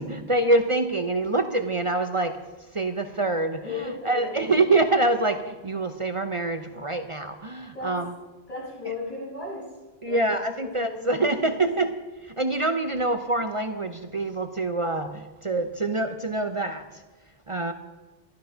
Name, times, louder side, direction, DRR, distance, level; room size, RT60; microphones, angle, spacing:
voice 1, 0.0-2.4 2.7-8.1 10.0-17.0 17.5-17.7, right 2 dB, 35° right, 7 dB, 0.7 m, -25 dB
voice 2, 3.6-4.4 7.7-8.1 8.5-10.2 10.6-11.7, left 3 dB, 35° left, -6 dB, 6.4 m, -36 dB
13.5 x 12.0 x 5.7 m, 1.1 s
omnidirectional pair, 1.1 m